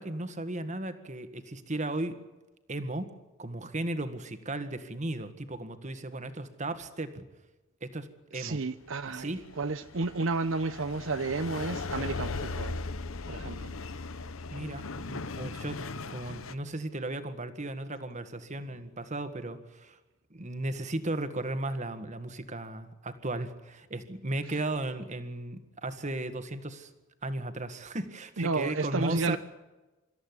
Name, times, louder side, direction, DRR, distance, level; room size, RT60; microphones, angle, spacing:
voice 1, 0.0-2.1 2.7-3.1 3.4-7.3 7.8-8.1 8.3-8.6 9.0-9.4 14.5-20.0 20.3-26.9 27.2-29.4, right 2 dB, 35° right, 1.8 m, -35 dB
voice 2, 8.3-12.8 13.2-13.7 28.4-29.4, right 3 dB, 70° right, 0.8 m, -31 dB
sound 1, 9.0-16.5, left 3 dB, 85° left, 1.0 m, -38 dB
26.0 x 14.0 x 9.7 m
head